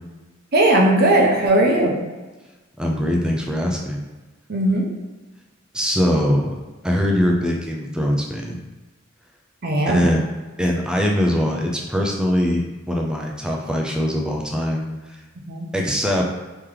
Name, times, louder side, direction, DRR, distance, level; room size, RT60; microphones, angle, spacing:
voice 1, 0.5-1.9 4.5-4.9 9.6-10.1 15.5-15.7, right 1 dB, 50° right, 0 dB, 0.7 m, -17 dB
voice 2, 2.8-4.0 5.7-6.5 6.8-8.6 9.9-10.2 10.6-15.2 15.7-16.3, equal, 5° right, 0 dB, 0.3 m, -22 dB
3.2 x 2.9 x 3.7 m, 1.2 s
head